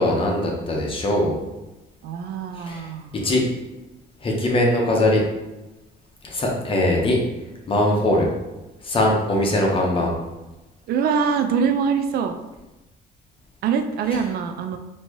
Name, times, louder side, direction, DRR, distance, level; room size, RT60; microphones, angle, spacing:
voice 1, 0.0-1.4 2.7-2.9 3.2-3.4 4.2-5.2 6.2-7.2 7.7-8.3 8.8-10.1, left 1 dB, 30° left, -1 dB, 1.0 m, -21 dB
voice 2, 2.0-3.2 10.9-12.4 13.6-14.8, right 6 dB, 65° right, 7 dB, 0.4 m, -23 dB
4.4 x 2.9 x 3.0 m, 1.0 s
cardioid pair, 110°, 17 cm